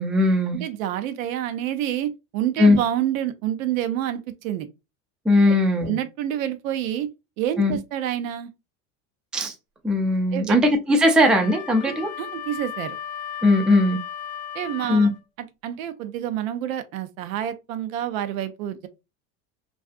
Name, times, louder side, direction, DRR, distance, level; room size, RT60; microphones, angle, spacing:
voice 1, 0.0-0.6 2.6-2.8 5.3-6.0 7.6-7.8 9.3-9.5 9.8-12.1 13.4-14.0 14.9-15.1, left 1 dB, ahead, 0.3 m, -19 dB
voice 2, 0.5-4.7 5.5-5.6 5.8-7.1 7.4-8.5 10.3-10.6 11.9-12.9 14.5-15.1 15.6-18.9, right 11 dB, 75° right, 0.6 m, -28 dB
Wind instrument woodwind instrument, 11.2-15.2, left 9 dB, 45° left, 0.7 m, -35 dB
2.5 x 2.4 x 2.4 m
hypercardioid pair, 90°, 40 cm